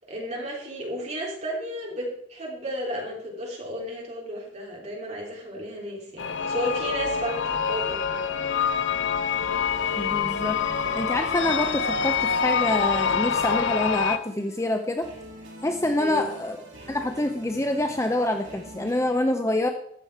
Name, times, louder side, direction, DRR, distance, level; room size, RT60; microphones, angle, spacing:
voice 1, 0.1-8.2 16.0-16.3, equal, 30° right, -2 dB, 3.1 m, -33 dB
sound 1, 6.2-14.2, left 6 dB, 60° left, 0.6 m, -26 dB
sound 2, 9.7-19.1, equal, 55° right, 3.8 m, -46 dB
voice 2, 10.0-10.6 11.0-15.1 15.6-16.6 16.9-19.7, left 1 dB, 15° left, 5 dB, 0.5 m, -26 dB
13.0 x 7.5 x 4.7 m, 0.72 s
head